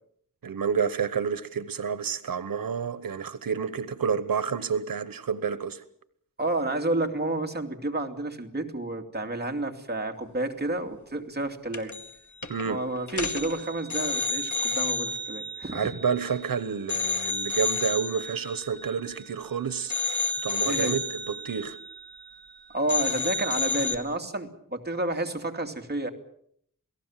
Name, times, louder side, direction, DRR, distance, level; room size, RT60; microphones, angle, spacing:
voice 1, 0.4-5.8 12.5-12.8 15.7-19.9 20.4-21.8, right 6 dB, 85° right, 14 dB, 1.1 m, -29 dB
voice 2, 6.4-11.9 12.7-15.9 20.6-21.0 22.7-26.1, right 2 dB, 30° right, 4 dB, 2.8 m, -30 dB
sound 1, 11.7-12.2 12.4-12.6 13.1-16.5 16.9-19.5 19.9-22.6 22.9-24.0, left 3 dB, 55° left, 2.5 m, -31 dB
28.0 x 18.0 x 7.5 m, 0.68 s
wide cardioid pair, 110°, 34 cm